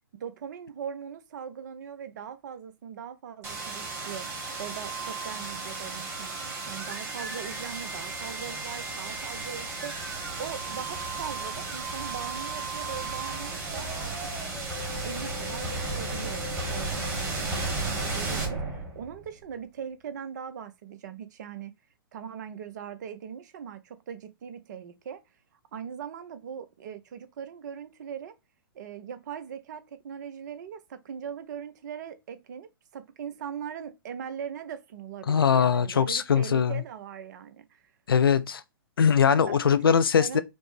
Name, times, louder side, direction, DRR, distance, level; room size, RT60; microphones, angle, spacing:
voice 1, 0.2-6.3 6.7-9.9 10.4-14.3 14.9-21.7 22.1-25.2 25.7-28.4 28.7-37.8 39.4-40.4, right 8 dB, 50° right, 0.6 m, -40 dB
sound 1, 3.4-19.3, right 3 dB, 20° right, 1.4 m, -34 dB
voice 2, 35.3-36.8 38.1-38.6 39.0-40.4, left 7 dB, 75° left, 0.5 m, -21 dB
5.1 x 2.1 x 3.1 m
figure-of-eight pair, 115°, 12 cm